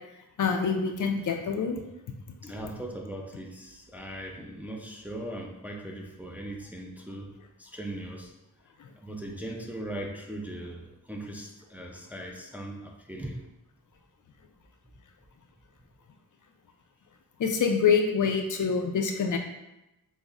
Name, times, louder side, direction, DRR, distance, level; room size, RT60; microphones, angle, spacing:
voice 1, 0.4-1.8 8.8-8.9 17.4-19.4, left 6 dB, 60° left, 4 dB, 0.4 m, -26 dB
voice 2, 2.4-8.3 9.0-13.4, right 1 dB, 5° right, 0 dB, 0.4 m, -39 dB
5.2 x 2.0 x 2.4 m, 0.94 s
wide cardioid pair, 65°, 35 cm